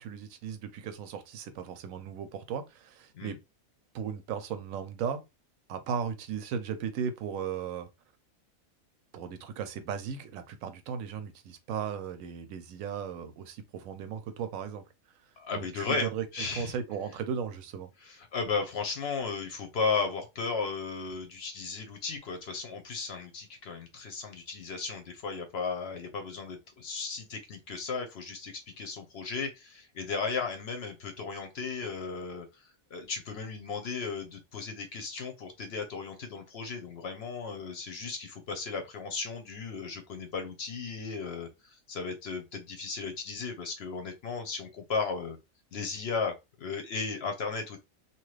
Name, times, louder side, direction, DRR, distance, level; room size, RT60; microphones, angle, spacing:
voice 1, 0.0-3.4 3.9-5.2 5.7-7.9 9.1-14.8 15.5-16.2 16.5-17.9, right 7 dB, 80° right, 1.0 m, -36 dB
voice 2, 15.4-16.7 18.0-45.4 45.7-47.8, left 4 dB, 60° left, 0.8 m, -35 dB
2.9 x 2.3 x 3.1 m
omnidirectional pair, 1.4 m